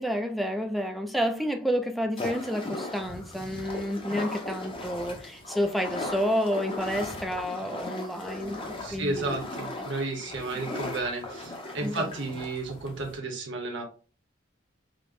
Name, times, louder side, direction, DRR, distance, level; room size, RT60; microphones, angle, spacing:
voice 1, 0.0-9.4 11.8-12.1, equal, ahead, 0.3 m, -30 dB
sound 1, 2.2-13.2, left 2 dB, 25° left, 0.7 m, -38 dB
voice 2, 8.8-13.8, right 2 dB, 65° right, 0.9 m, -32 dB
5.0 x 2.1 x 2.5 m
head